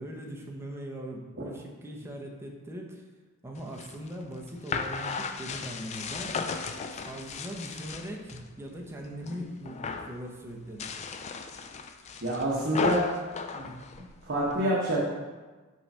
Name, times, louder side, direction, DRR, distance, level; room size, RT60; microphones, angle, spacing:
voice 1, 0.0-3.0 3.4-6.4 6.9-10.9, equal, 10° right, -1 dB, 0.7 m, -40 dB
sound 1, 3.6-8.5 8.8-9.4 9.7-10.2 10.7-14.5, left 4 dB, 30° left, 0.3 m, -35 dB
voice 2, 12.2-13.0 13.5-13.7 14.2-15.1, right 1 dB, 55° right, -6 dB, 1.0 m, -27 dB
5.3 x 3.3 x 5.4 m, 1.3 s
head